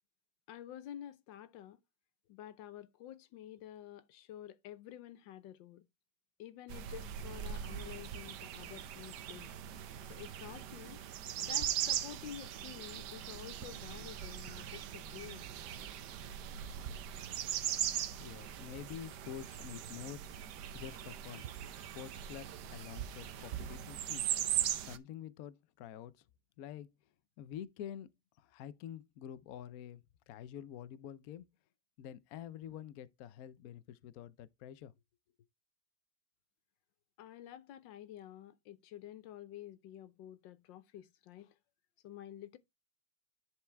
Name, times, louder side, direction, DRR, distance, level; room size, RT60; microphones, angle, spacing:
voice 1, 0.5-1.8 2.3-5.8 6.4-9.5 10.1-11.0 11.4-15.5 37.2-41.5 42.0-42.6, left 11 dB, 90° left, 1.5 m, -50 dB
sound 1, 6.7-25.0, right 10 dB, 70° right, 1.3 m, -40 dB
voice 2, 18.2-20.2 20.7-21.5 21.8-24.3 24.8-26.1 26.6-26.9 27.4-28.1 28.4-30.0 30.3-31.5 32.0-34.9, left 10 dB, 65° left, 1.0 m, -47 dB
10.0 x 4.7 x 3.3 m
omnidirectional pair, 2.0 m